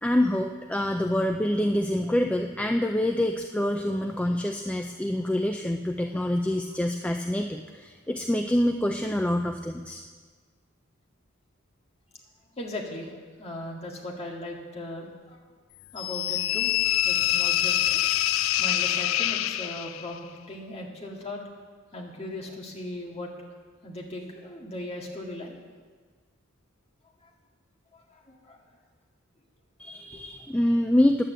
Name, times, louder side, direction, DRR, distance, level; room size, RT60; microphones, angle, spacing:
voice 1, 0.0-10.0 29.8-31.2, left 1 dB, 5° left, 4 dB, 0.4 m, -26 dB
voice 2, 12.6-15.4 15.9-16.7 17.0-18.0 18.6-21.4 21.9-23.3 23.8-25.6 28.1-28.6 30.1-30.2, left 1 dB, 30° left, -1 dB, 1.9 m, -38 dB
sound 1, 16.0-20.1, left 12 dB, 70° left, 0.4 m, -25 dB
10.5 x 8.9 x 7.7 m, 1.5 s
head